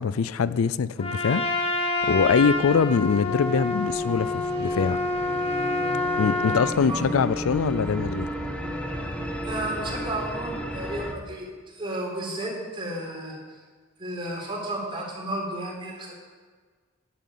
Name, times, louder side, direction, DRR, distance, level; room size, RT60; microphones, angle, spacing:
voice 1, 0.0-5.0 6.2-8.3, left 5 dB, 80° left, 17 dB, 0.4 m, -23 dB
Trumpet, 1.0-6.8, left 2 dB, 25° left, 1.6 m, -27 dB
sound 1, 2.0-11.1, equal, 5° left, 1.3 m, -34 dB
voice 2, 9.4-13.6 14.0-16.1, right 1 dB, 25° right, -2 dB, 4.2 m, -33 dB
11.5 x 11.0 x 8.4 m, 1.5 s
head